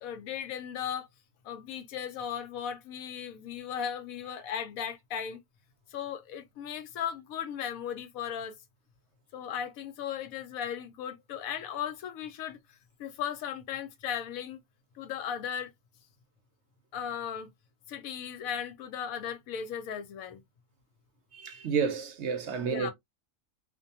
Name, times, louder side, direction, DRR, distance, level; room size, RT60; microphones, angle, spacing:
voice 1, 0.0-1.1 1.4-5.4 5.9-8.6 9.3-14.6 15.0-15.7 16.9-17.5 17.9-20.4 22.6-22.9, left 8 dB, 85° left, 1.0 m, -36 dB
voice 2, 21.3-22.9, right 6 dB, 65° right, 0.8 m, -30 dB
2.5 x 2.2 x 2.7 m
omnidirectional pair, 1.4 m